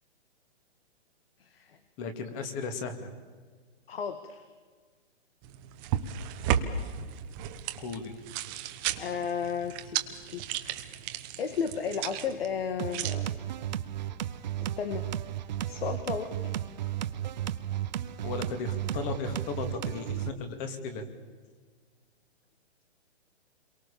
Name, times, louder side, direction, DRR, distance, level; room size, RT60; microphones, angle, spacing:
voice 1, 1.4-1.8 3.9-4.5 9.0-10.4 11.2-13.4 14.8-15.1 15.7-16.5, left 6 dB, 60° left, 8 dB, 2.3 m, -34 dB
voice 2, 2.0-3.1 7.8-8.1 18.2-21.0, left 4 dB, 25° left, 8 dB, 2.5 m, -35 dB
sound 1, 5.4-13.1, right 9 dB, 20° right, 1.1 m, -34 dB
sound 2, 12.8-20.3, right 11 dB, 40° right, 0.9 m, -34 dB
29.5 x 23.0 x 7.1 m, 1.5 s
hypercardioid pair, 160°, 33 cm